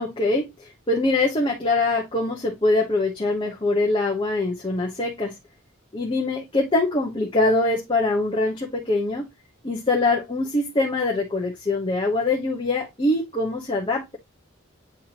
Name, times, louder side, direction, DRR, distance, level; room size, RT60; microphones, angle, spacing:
voice 1, 0.0-5.4 5.9-9.3 9.6-14.2, left 2 dB, 25° left, 1.1 m, -23 dB
8.9 x 3.5 x 3.0 m
head